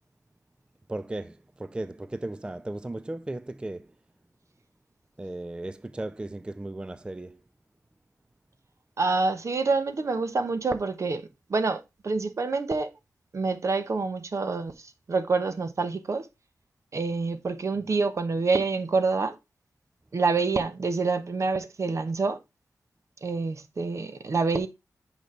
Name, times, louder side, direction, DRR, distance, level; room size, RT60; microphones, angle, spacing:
voice 1, 0.9-3.9 5.2-7.4, right 2 dB, 15° right, 0.3 m, -36 dB
voice 2, 9.0-11.2 11.5-12.9 13.3-14.7 15.1-16.3 16.9-19.3 20.1-22.4 23.2-24.7, right 4 dB, 55° right, 1.0 m, -27 dB
8.3 x 5.2 x 3.3 m
wide cardioid pair, 85°, 6 cm